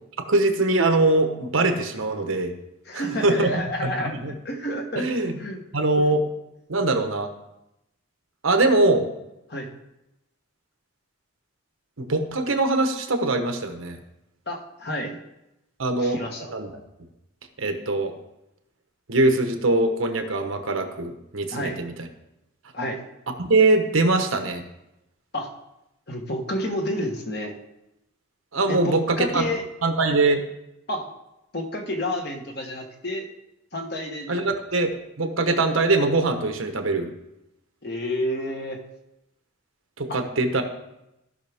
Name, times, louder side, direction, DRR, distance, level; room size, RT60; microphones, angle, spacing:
voice 1, 0.3-2.5 2.9-4.3 5.0-5.4 5.7-6.3 6.7-7.3 8.4-9.1 12.0-14.0 15.8-16.2 16.5-16.7 17.6-18.1 19.1-21.9 23.4-24.6 28.5-29.5 29.8-30.4 34.3-37.1 40.0-40.6, right 2 dB, 80° right, 6 dB, 1.1 m, -22 dB
voice 2, 2.9-5.0 5.4-5.6 9.5-9.7 14.5-15.2 16.0-16.5 21.5-21.8 22.7-23.0 25.3-25.5 26.1-27.6 28.7-29.6 30.9-31.1 31.5-33.3 33.7-34.4 37.8-38.8 40.1-40.2, left 1 dB, 50° left, 3 dB, 1.3 m, -30 dB
15.0 x 5.9 x 3.5 m, 0.88 s
head